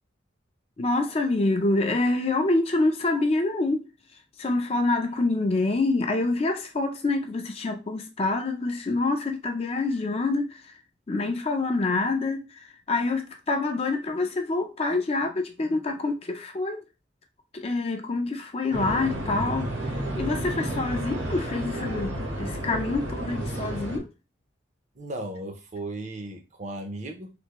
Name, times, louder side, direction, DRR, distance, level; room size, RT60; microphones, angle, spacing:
voice 1, 0.8-10.8 11.1-16.8 17.5-24.1, left 2 dB, 30° left, 0.4 m, -26 dB
sound 1, 18.7-24.0, right 1 dB, 75° right, 1.0 m, -31 dB
voice 2, 25.0-27.3, right 1 dB, 35° right, 0.6 m, -36 dB
3.4 x 2.6 x 2.9 m
head